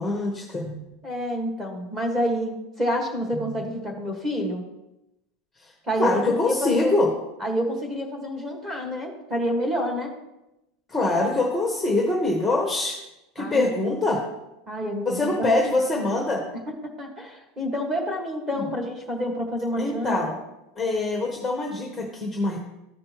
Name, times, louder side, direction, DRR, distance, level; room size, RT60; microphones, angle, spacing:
voice 1, 0.0-0.9 3.3-3.7 5.6-5.7 6.0-7.1 10.9-13.0 13.3-14.2 15.0-16.4 18.5-18.7 19.8-20.3 20.8-22.6, left 2 dB, 5° left, -1 dB, 0.9 m, -24 dB
voice 2, 1.0-4.6 5.8-7.0 7.4-10.1 13.4-13.7 14.7-15.6 16.8-20.3, equal, 15° right, 1 dB, 1.5 m, -28 dB
13.5 x 5.2 x 2.9 m, 0.92 s
supercardioid pair, 175°, 0 cm